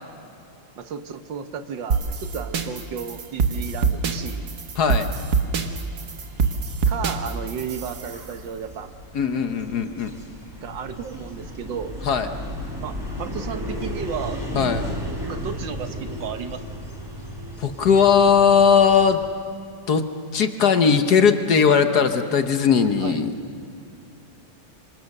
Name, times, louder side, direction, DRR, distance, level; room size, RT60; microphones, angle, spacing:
voice 1, 0.8-4.4 6.9-8.9 10.6-11.9 12.8-14.4 15.2-16.6 23.0-23.2, right 7 dB, 70° right, 9 dB, 1.7 m, -33 dB
sound 1, 1.9-8.3, right 5 dB, 55° right, 1.7 m, -25 dB
voice 2, 4.7-5.1 9.1-10.1 12.0-12.3 14.5-14.9 17.6-19.2 19.9-20.1 20.3-23.3, left 6 dB, 55° left, 8 dB, 1.5 m, -18 dB
sound 2, 6.1-19.3, equal, 10° right, 4.0 m, -35 dB
27.5 x 25.0 x 6.6 m, 2.6 s
omnidirectional pair, 2.2 m